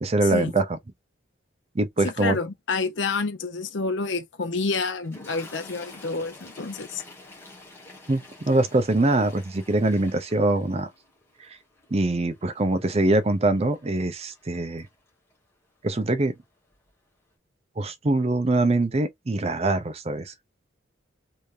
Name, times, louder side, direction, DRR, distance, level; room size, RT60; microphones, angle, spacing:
voice 1, 0.0-0.7 1.7-2.4 8.1-10.9 11.4-11.6 11.9-14.9 15.8-16.3 17.8-20.3, right 2 dB, 30° right, 0.5 m, -23 dB
voice 2, 2.0-7.0, left 4 dB, 65° left, 0.7 m, -28 dB
Toilet flush, 5.0-15.3 16.3-16.4 16.7-16.9, left 2 dB, 15° left, 1.3 m, -49 dB
3.3 x 3.2 x 2.6 m
head